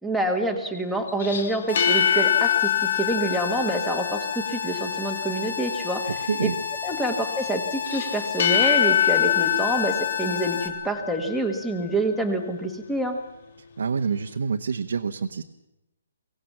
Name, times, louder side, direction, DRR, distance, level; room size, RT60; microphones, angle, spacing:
voice 1, 0.0-6.1 6.4-6.5 6.8-13.2, right 1 dB, ahead, 4 dB, 1.5 m, -27 dB
sound 1, 1.1-4.6 7.8-11.4, left 10 dB, 40° left, 1.7 m, -24 dB
sound 2, 1.7-10.7, left 7 dB, 70° left, 3.5 m, -32 dB
voice 2, 13.8-15.4, right 5 dB, 70° right, 3 dB, 1.1 m, -26 dB
23.5 x 17.0 x 7.3 m, 0.91 s
hypercardioid pair, 175°, 0 cm